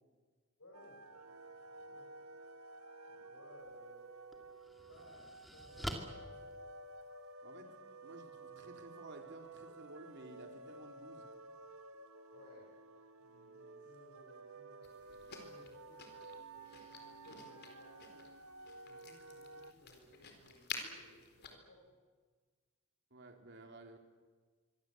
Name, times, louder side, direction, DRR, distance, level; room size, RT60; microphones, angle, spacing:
voice 1, 0.6-2.3 3.1-4.0 4.9-6.4 12.3-12.7 13.2-18.3 18.8-22.0, left 1 dB, 70° left, -2 dB, 7.5 m, -62 dB
sound 1, 0.7-19.7, right 2 dB, 75° right, 1.5 m, -53 dB
sound 2, 3.6-3.7 4.3-7.3, equal, ahead, 2.6 m, -46 dB
voice 2, 7.4-7.7 8.0-11.3 23.1-24.0, right 2 dB, 55° right, 3 dB, 3.9 m, -54 dB
sound 3, 14.8-21.5, left 5 dB, 50° left, 4.2 m, -51 dB
25.5 x 24.0 x 8.2 m, 1.4 s
head